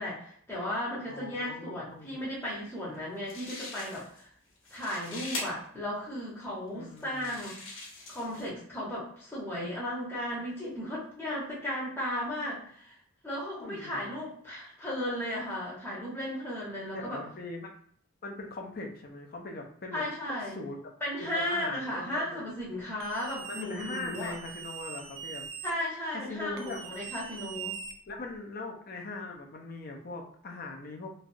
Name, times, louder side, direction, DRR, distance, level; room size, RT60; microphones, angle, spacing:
voice 1, 0.0-4.3 4.7-7.7 8.1-13.0 13.2-17.2 19.9-20.6 21.0-24.3 25.6-27.8, left 1 dB, 10° left, -8 dB, 0.8 m, -35 dB
voice 2, 1.0-2.2 6.7-7.4 13.6-14.1 16.9-17.8 18.2-20.0 20.6-20.8 21.2-22.4 23.5-25.5 26.1-26.8 28.1-31.1, left 2 dB, 45° left, 1 dB, 0.5 m, -41 dB
sound 1, 2.9-3.0 3.3-4.2 4.6-5.4 6.2-6.3 7.0-8.5, left 2 dB, 65° left, 1.0 m, -41 dB
sound 2, 23.0-25.7 26.6-28.4, right 7 dB, 70° right, 0.4 m, -42 dB
3.0 x 2.4 x 2.6 m, 0.62 s
head